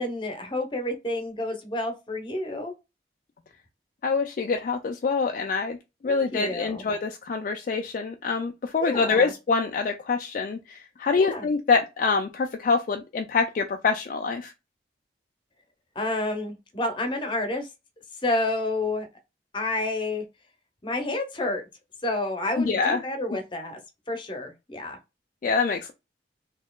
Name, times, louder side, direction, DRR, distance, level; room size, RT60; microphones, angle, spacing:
voice 1, 0.0-2.7 6.0-6.9 8.8-9.3 11.1-11.4 16.0-17.7 18.2-19.1 19.5-20.2 20.8-21.6 22.0-23.8 24.1-25.0, left 2 dB, 25° left, 0.7 m, -29 dB
voice 2, 4.0-5.8 6.0-14.5 22.6-23.0 25.4-25.9, left 4 dB, 45° left, 0.3 m, -25 dB
4.2 x 2.9 x 2.2 m
head